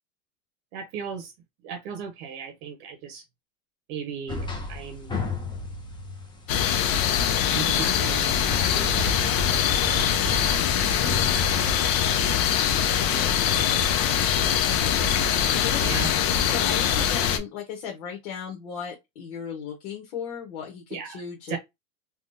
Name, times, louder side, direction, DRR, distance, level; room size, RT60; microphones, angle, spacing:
voice 1, 0.7-1.3 1.6-3.2 3.9-5.1 7.5-9.8 10.3-12.6 13.1-15.4 15.8-16.1 20.9-21.2 21.5-21.6, right 6 dB, 55° right, 0.8 m, -38 dB
sound 1, 4.3-12.9, left 3 dB, 10° left, 0.7 m, -34 dB
sound 2, 6.5-17.4, left 9 dB, 50° left, 0.7 m, -23 dB
voice 2, 15.5-15.8 16.5-21.6, left 7 dB, 70° left, 1.2 m, -36 dB
3.4 x 2.4 x 2.7 m
supercardioid pair, 125°, 42 cm